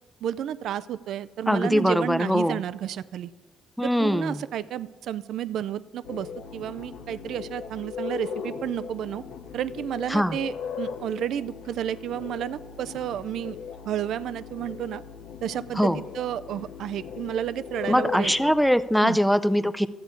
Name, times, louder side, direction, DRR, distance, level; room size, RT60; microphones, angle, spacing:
voice 1, 0.2-3.3 3.8-9.2 9.5-13.6 13.9-15.0 15.4-18.3 19.0-19.2, right 10 dB, 75° right, 15 dB, 0.4 m, -31 dB
voice 2, 1.5-2.6 3.8-4.4 10.1-10.4 15.8-16.0 17.9-19.9, equal, ahead, 13 dB, 0.5 m, -22 dB
sound 1, 6.0-18.7, left 6 dB, 80° left, 0.7 m, -38 dB
14.0 x 8.3 x 4.4 m, 1.3 s
cardioid pair, 90°, 0 cm